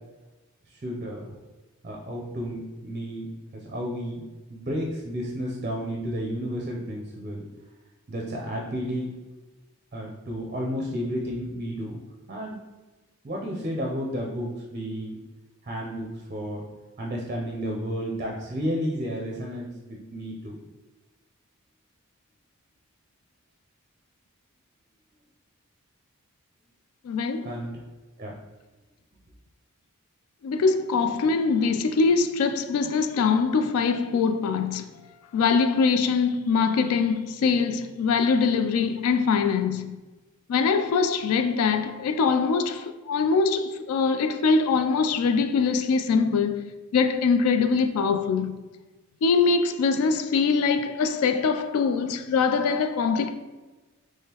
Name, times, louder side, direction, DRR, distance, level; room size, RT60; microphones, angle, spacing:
voice 1, 0.8-1.2 1.8-3.3 3.5-4.2 4.5-7.4 8.1-9.1 9.9-12.0 12.3-12.6 13.2-15.2 15.6-16.6 17.0-20.6 27.4-27.8 28.2-28.3, equal, 35° right, 0.4 m, -32 dB
voice 2, 27.0-27.5 30.4-34.8 35.3-39.9 40.5-48.5 49.2-53.3, left 5 dB, 75° left, 0.3 m, -23 dB
3.6 x 3.2 x 2.8 m
head